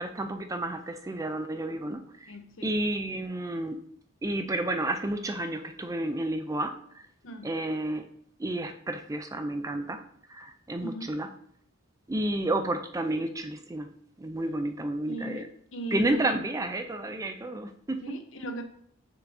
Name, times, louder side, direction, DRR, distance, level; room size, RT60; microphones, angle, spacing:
voice 1, 0.0-2.3 2.6-3.8 4.2-7.1 7.4-8.1 8.4-10.0 10.3-11.3 12.1-13.9 14.2-15.5 15.9-18.0, right 1 dB, 15° right, 7 dB, 0.4 m, -31 dB
voice 2, 2.3-2.7 7.2-7.5 10.8-11.2 15.1-16.3 17.0-17.1 18.0-18.6, equal, 65° left, 6 dB, 0.8 m, -37 dB
6.8 x 5.8 x 2.7 m, 0.66 s
head